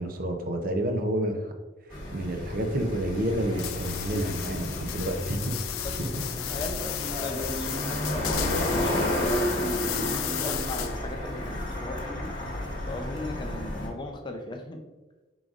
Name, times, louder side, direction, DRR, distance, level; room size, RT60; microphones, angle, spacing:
voice 1, 0.0-1.5 2.1-5.5 6.1-6.3, right 1 dB, 45° right, 5 dB, 0.5 m, -29 dB
sound 1, 1.9-13.9, left 1 dB, 45° left, 1.2 m, -31 dB
sound 2, 3.6-11.1, left 12 dB, 90° left, 0.3 m, -35 dB
voice 2, 5.8-6.2 6.5-12.6 12.9-14.8, left 2 dB, 25° left, 4 dB, 0.5 m, -38 dB
4.7 x 3.9 x 2.4 m, 1.2 s
head